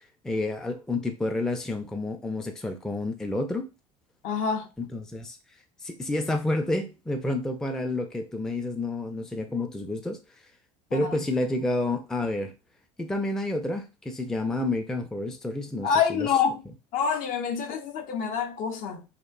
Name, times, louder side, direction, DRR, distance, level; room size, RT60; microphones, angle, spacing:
voice 1, 0.2-3.7 4.9-5.4 5.8-10.2 10.9-12.5 13.0-16.3, left 2 dB, 5° left, 0.3 m, -29 dB
voice 2, 4.2-4.7 10.9-11.2 15.8-16.6 16.9-19.0, left 6 dB, 55° left, 0.5 m, -27 dB
2.5 x 2.1 x 2.3 m
hypercardioid pair, 80°, 17 cm